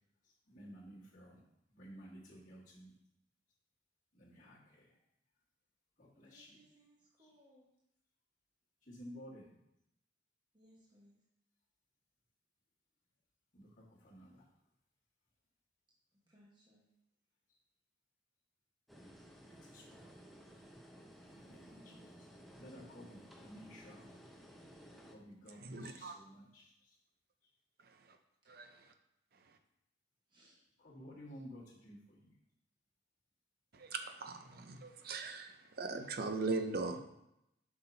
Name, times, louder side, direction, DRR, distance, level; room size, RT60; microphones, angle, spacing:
voice 1, 0.5-1.4 1.7-2.9 4.1-4.9 6.0-6.5 7.2-7.3 8.9-9.5 13.5-13.7 14.0-14.4 19.5-20.2 21.2-22.1 22.6-24.2 25.1-26.7 30.8-32.3, equal, 40° left, 1.7 m, -54 dB
voice 2, 6.1-7.7 10.5-11.2 16.3-16.8 21.6-22.0 30.3-30.6, equal, 25° right, 1.3 m, -65 dB
sound 1, 18.9-25.2, equal, ahead, 0.6 m, -56 dB
voice 3, 25.5-26.1 27.8-28.2 28.5-28.9 33.7-37.0, right 3 dB, 50° right, 0.6 m, -40 dB
7.8 x 5.9 x 2.7 m
head